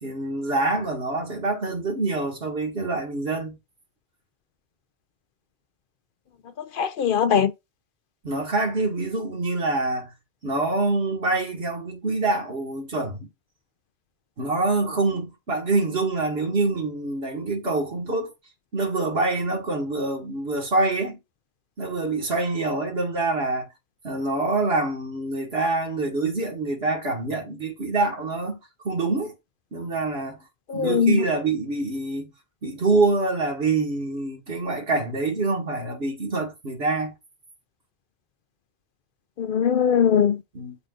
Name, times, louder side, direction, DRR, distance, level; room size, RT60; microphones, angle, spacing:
voice 1, 0.0-3.6 8.2-10.1 10.4-13.3 14.4-18.3 18.7-21.2 21.8-23.7 24.0-28.6 28.8-29.3 29.7-30.4 30.7-32.3 32.6-37.1 40.5-40.8, right 3 dB, 75° right, 2.0 m, -25 dB
voice 2, 6.8-7.5 30.7-31.2 39.4-40.4, left 8 dB, 65° left, 0.7 m, -20 dB
11.0 x 3.9 x 2.5 m
omnidirectional pair, 1.0 m